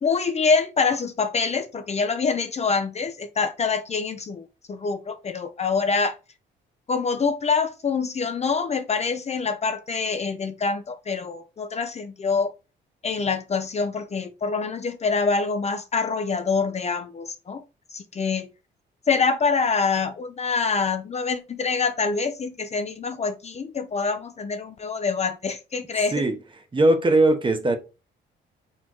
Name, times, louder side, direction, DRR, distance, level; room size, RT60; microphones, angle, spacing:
voice 1, 0.0-6.2 6.9-12.5 13.0-17.6 17.9-18.5 19.1-26.2, left 5 dB, 35° left, 0.5 m, -25 dB
voice 2, 26.7-27.8, right 2 dB, 25° right, 0.9 m, -19 dB
4.4 x 3.6 x 3.0 m
cardioid pair, 90°, 20 cm